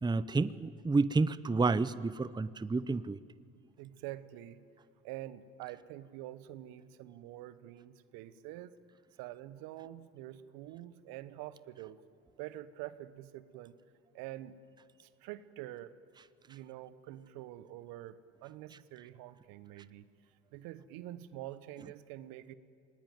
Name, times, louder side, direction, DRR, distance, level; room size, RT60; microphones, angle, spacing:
voice 1, 0.0-3.2, right 3 dB, 10° right, 16 dB, 0.7 m, -30 dB
voice 2, 3.8-4.6 5.0-8.7 9.2-12.0 12.4-13.8 14.1-14.6 15.0-15.9 16.5-20.0 20.5-22.5, right 14 dB, 70° right, 15 dB, 1.1 m, -46 dB
28.0 x 19.5 x 9.2 m, 2.5 s
hypercardioid pair, 60°, 36 cm